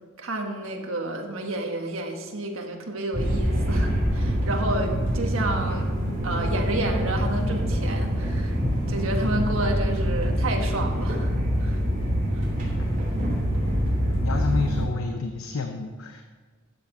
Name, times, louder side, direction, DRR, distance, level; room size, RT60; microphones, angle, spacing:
voice 1, 0.2-6.0 6.2-8.6 8.9-11.3 11.6-11.8 12.3-12.4, right 1 dB, 70° right, 3 dB, 1.5 m, -30 dB
sound 1, 3.1-14.9, equal, 40° right, 3.1 m, -25 dB
voice 2, 14.2-16.2, left 4 dB, 80° left, 5 dB, 0.7 m, -29 dB
13.0 x 8.3 x 4.3 m, 1.5 s
head